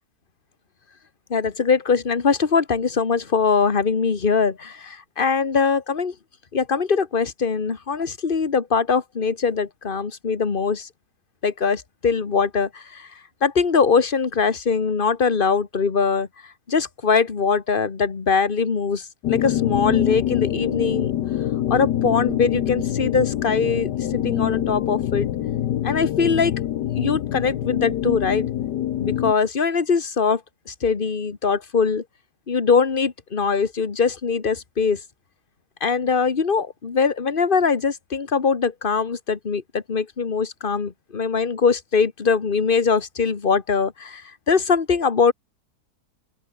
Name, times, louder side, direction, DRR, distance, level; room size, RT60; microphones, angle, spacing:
voice 1, 1.3-6.1 6.5-10.9 11.4-13.1 13.4-16.3 16.7-21.1 21.7-25.3 25.8-26.5 26.9-28.5 29.0-30.4 30.7-32.0 32.5-35.0 35.8-45.3, left 5 dB, 35° left, 1.6 m, -22 dB
sound 1, 19.2-29.3, left 12 dB, 90° left, 1.5 m, -25 dB
open air
omnidirectional pair, 1.7 m